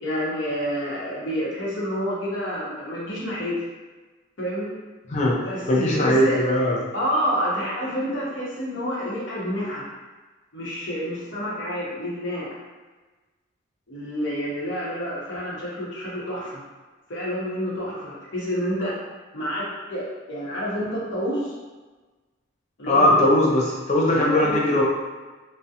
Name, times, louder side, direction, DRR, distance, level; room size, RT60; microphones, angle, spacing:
voice 1, 0.0-3.5 4.4-4.8 5.4-6.4 6.9-9.8 10.5-12.5 13.9-16.6 17.1-19.0 19.3-19.6 19.9-21.5 22.8-23.2 24.1-24.6, equal, 80° left, -6 dB, 0.8 m, -28 dB
voice 2, 5.7-6.8 22.9-24.8, left 1 dB, 35° left, -3 dB, 0.4 m, -19 dB
2.3 x 2.0 x 2.7 m, 1.3 s
head